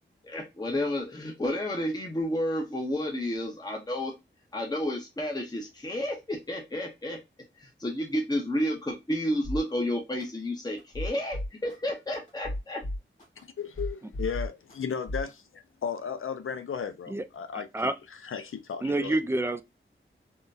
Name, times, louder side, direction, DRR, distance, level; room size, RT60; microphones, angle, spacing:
voice 1, 0.2-4.1 4.5-7.2 7.6-12.8, left 1 dB, 20° left, 0.8 m, -31 dB
sound 1, 9.4-9.6 10.2-10.3 10.8-11.7 12.3-13.4 13.7-14.7 15.1-15.3, left 1 dB, 35° left, 1.9 m, -34 dB
voice 2, 13.6-19.2, left 7 dB, 80° left, 0.5 m, -35 dB
voice 3, 18.8-19.6, right 2 dB, 10° right, 0.3 m, -27 dB
3.7 x 2.2 x 2.5 m
wide cardioid pair, 95°, 21 cm